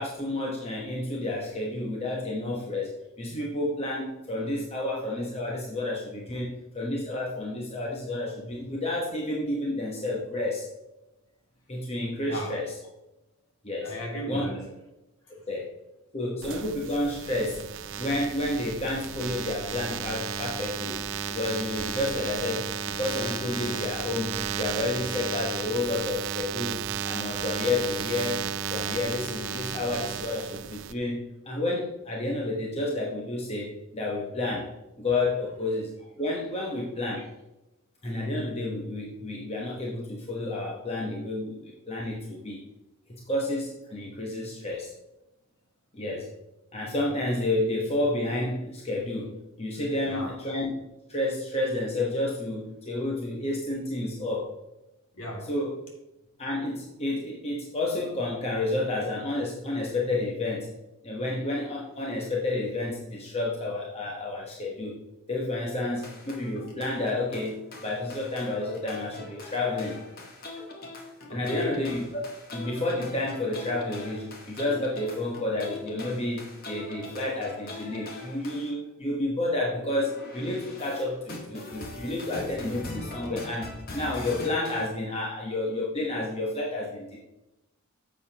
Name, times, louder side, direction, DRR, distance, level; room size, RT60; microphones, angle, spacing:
voice 1, 0.0-10.7 11.7-12.7 13.6-13.9 14.3-14.5 15.3-15.7 16.1-17.6 18.0-21.0 21.3-34.7 35.0-37.3 38.0-42.6 43.1-44.9 45.9-46.3 46.7-50.7 51.1-54.5 55.5-55.8 56.4-60.7 61.0-65.0 65.3-70.0 71.3-72.2 72.5-87.2, left 2 dB, 30° left, -2 dB, 1.1 m, -30 dB
voice 2, 12.2-12.6 13.8-14.7 49.9-50.4 55.1-55.5 71.3-71.9, equal, 60° left, -1 dB, 2.5 m, -35 dB
sound 1, 16.4-30.9, right 7 dB, 55° right, 0.5 m, -34 dB
sound 2, 66.0-78.7 79.7-84.9, left 2 dB, 45° left, 1.6 m, -42 dB
10.5 x 7.3 x 2.9 m, 0.94 s
head